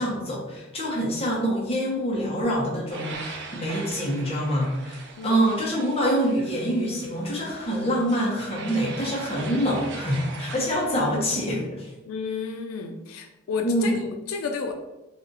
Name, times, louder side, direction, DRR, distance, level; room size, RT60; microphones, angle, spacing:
voice 1, 0.0-11.9 13.6-13.9, equal, 30° left, -4 dB, 0.9 m, -26 dB
sound 1, 2.9-11.2, right 4 dB, 60° right, 0.5 m, -41 dB
voice 2, 5.2-5.5 12.0-14.7, left 5 dB, 90° left, 5 dB, 0.4 m, -32 dB
2.7 x 2.4 x 3.9 m, 1.0 s
head